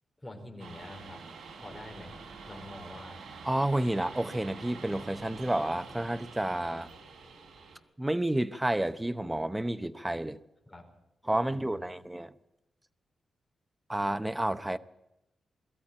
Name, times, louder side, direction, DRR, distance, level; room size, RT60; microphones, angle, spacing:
voice 1, 0.2-1.2 1.6-2.2 2.5-3.2 10.7-10.8 11.4-12.1, left 1 dB, 10° left, 4.6 m, -46 dB
sound 1, 0.6-7.8, right 4 dB, 70° right, 4.1 m, -47 dB
voice 2, 3.4-6.9 8.0-10.4 11.2-12.3 13.9-14.8, right 1 dB, 10° right, 0.8 m, -30 dB
21.5 x 14.0 x 8.8 m
wide cardioid pair, 135°, 0 cm